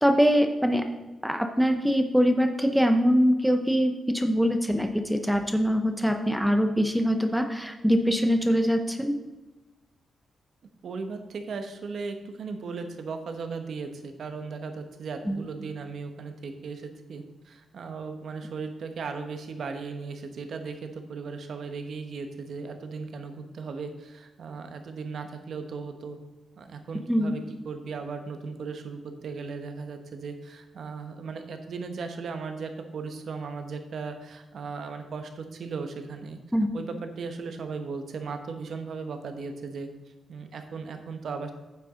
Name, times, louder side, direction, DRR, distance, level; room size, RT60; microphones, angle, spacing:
voice 1, 0.0-0.8 1.2-9.2 15.3-15.4 27.1-27.3 36.5-36.7, equal, ahead, 6 dB, 0.8 m, -23 dB
voice 2, 10.8-26.2 26.6-36.4 36.7-39.9 40.3-41.5, right 4 dB, 60° right, 6 dB, 1.1 m, -37 dB
9.4 x 7.4 x 3.8 m, 1.1 s
wide cardioid pair, 135°, 0 cm